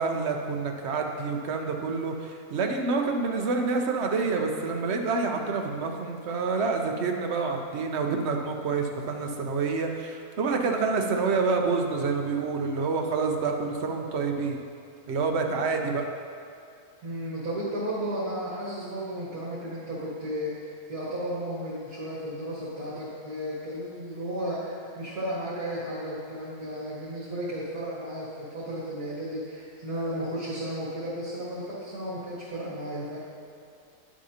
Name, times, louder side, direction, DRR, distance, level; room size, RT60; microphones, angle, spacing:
voice 1, 0.0-14.6 15.1-16.0, right 4 dB, 55° right, 3 dB, 0.9 m, -27 dB
voice 2, 17.0-33.2, equal, 85° right, -10 dB, 2.2 m, -34 dB
10.0 x 7.3 x 2.8 m, 2.3 s
omnidirectional pair, 1.6 m